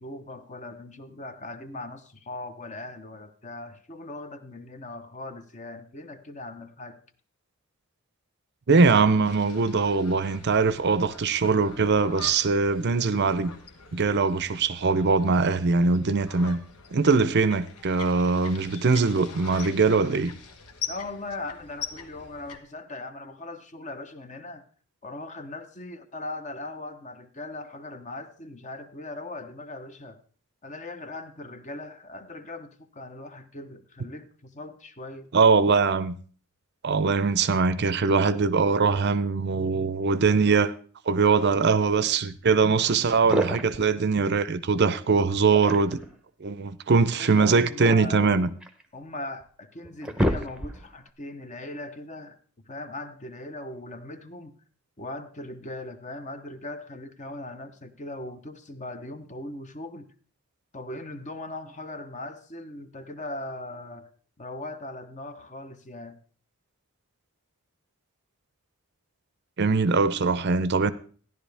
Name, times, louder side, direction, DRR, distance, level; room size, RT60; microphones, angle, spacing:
voice 1, 0.0-7.0 20.9-24.6 25.0-30.2 30.6-35.3 47.2-48.4 48.9-52.4 52.6-54.6 55.0-60.1 60.7-64.1 64.4-66.2, left 2 dB, 35° left, 0.8 m, -39 dB
voice 2, 8.7-13.5 13.9-16.6 16.9-20.3 35.3-36.2 36.8-40.7 41.1-46.0 46.4-48.5 69.6-70.9, right 4 dB, 50° right, 0.5 m, -22 dB
sound 1, 9.2-22.6, left 5 dB, 90° left, 1.3 m, -43 dB
sound 2, 42.8-42.9 43.1-43.9 45.3-46.2 47.4-48.8 49.4-49.5 49.8-51.0, equal, 5° right, 0.8 m, -29 dB
14.0 x 10.5 x 3.4 m
head